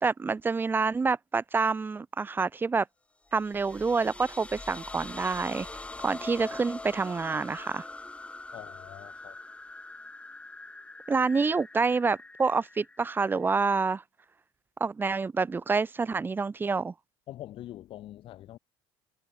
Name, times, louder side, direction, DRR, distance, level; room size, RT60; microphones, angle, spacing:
voice 1, 0.0-2.9 3.3-5.7 6.0-7.8 11.1-14.0 14.8-16.9, right 4 dB, 20° right, 0.9 m, -27 dB
sound 1, 3.3-13.9, left 2 dB, 10° left, 1.6 m, -44 dB
voice 2, 8.5-9.4 17.3-18.6, left 13 dB, 50° left, 3.7 m, -44 dB
supercardioid pair, 100°, 11 cm